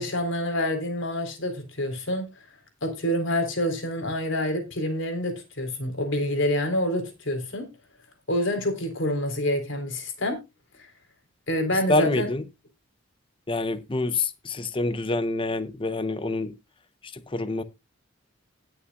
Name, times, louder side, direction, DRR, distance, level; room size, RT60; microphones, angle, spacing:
voice 1, 0.0-2.3 2.8-7.7 8.3-10.4 10.8-10.9 11.5-12.3, left 1 dB, 60° left, 3.8 m, -27 dB
voice 2, 11.9-12.4 13.5-16.5 17.3-17.6, left 2 dB, 25° left, 0.8 m, -26 dB
20.0 x 7.1 x 2.4 m
head